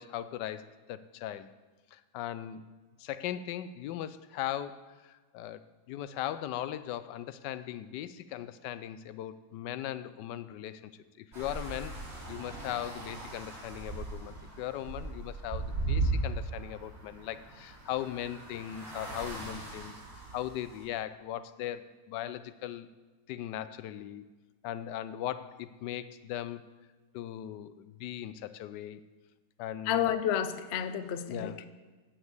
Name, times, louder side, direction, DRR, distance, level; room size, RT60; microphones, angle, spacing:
voice 1, 0.0-1.5 1.9-2.6 3.0-10.8 11.2-11.9 12.3-22.9 23.3-24.2 24.6-26.6 27.1-29.0 29.6-30.1 31.3-31.6, left 11 dB, 85° left, 14 dB, 1.2 m, -39 dB
sound 1, 11.3-20.8, right 2 dB, 35° right, 3.9 m, -37 dB
voice 2, 29.8-31.7, left 9 dB, 60° left, 11 dB, 0.7 m, -30 dB
8.7 x 8.1 x 7.9 m, 1.3 s
omnidirectional pair, 1.8 m